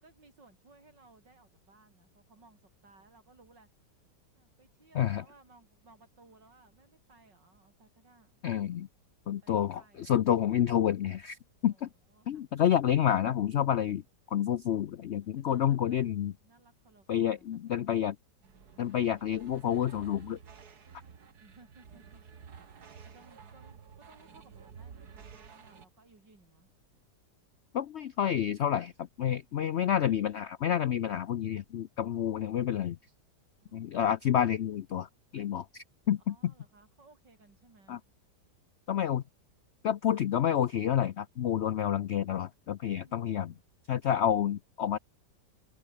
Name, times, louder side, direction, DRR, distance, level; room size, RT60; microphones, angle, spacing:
voice 1, 0.0-3.7 4.3-8.4 9.3-10.3 11.7-12.4 15.2-16.1 16.4-18.0 21.4-22.8 23.0-26.7 29.6-29.9 33.6-34.1 36.3-38.0 42.9-43.6, right 3 dB, 90° right, 5.8 m, -61 dB
voice 2, 8.4-8.9 9.3-11.4 11.6-11.9 12.3-14.0 14.3-16.3 17.1-18.2 18.8-20.4 27.7-33.0 33.7-36.5 37.9-38.0 38.9-39.2 39.8-43.5 43.9-45.0, left 10 dB, 75° left, 0.6 m, -29 dB
sound 1, 18.4-25.9, right 6 dB, 65° right, 2.3 m, -52 dB
omnidirectional pair, 1.9 m